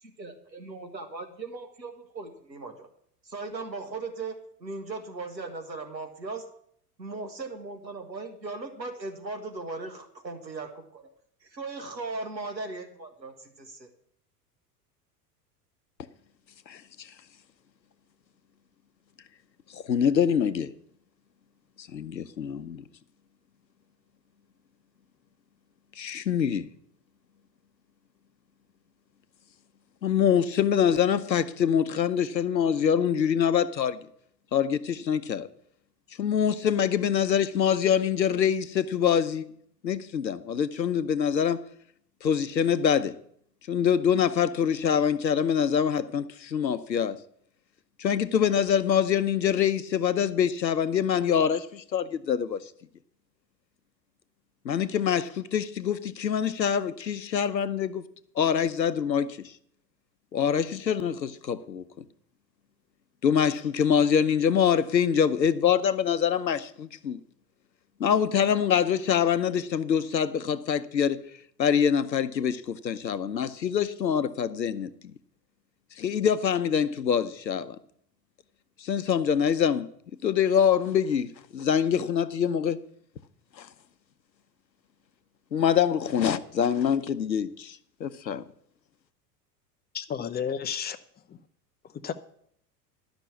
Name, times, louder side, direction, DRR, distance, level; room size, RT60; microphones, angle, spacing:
voice 1, 0.0-2.9 3.2-4.4 4.6-6.4 7.0-11.0 11.4-13.9, right 3 dB, 90° right, 1.8 m, -38 dB
voice 2, 16.7-17.1 19.7-20.7 21.8-22.8 26.0-26.7 30.0-34.1 34.5-35.5 36.2-39.5 39.8-41.6 42.2-43.1 43.7-47.2 48.0-52.6 54.6-58.0 58.4-59.4 60.3-62.0 63.2-67.2 68.0-71.2 71.6-75.1 76.0-77.8 78.8-79.9 80.2-82.8 83.6-83.7 85.5-88.4, left 8 dB, 85° left, 0.8 m, -25 dB
voice 3, 89.9-91.0 91.3-91.4 92.0-92.1, left 8 dB, 20° left, 0.7 m, -31 dB
11.5 x 6.1 x 8.2 m
figure-of-eight pair, 85°, 50 cm